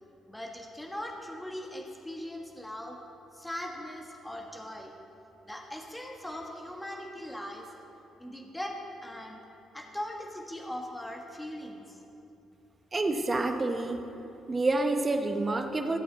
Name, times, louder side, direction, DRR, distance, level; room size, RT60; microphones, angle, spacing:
voice 1, 0.3-3.0 3.3-4.9 5.5-7.7 8.2-9.4 9.7-12.0, left 1 dB, 10° left, 0 dB, 1.5 m, -40 dB
voice 2, 12.9-14.0 14.5-16.0, right 2 dB, 30° right, 6 dB, 1.1 m, -28 dB
17.5 x 8.3 x 4.1 m, 2.9 s
cardioid pair, 90°, 0 cm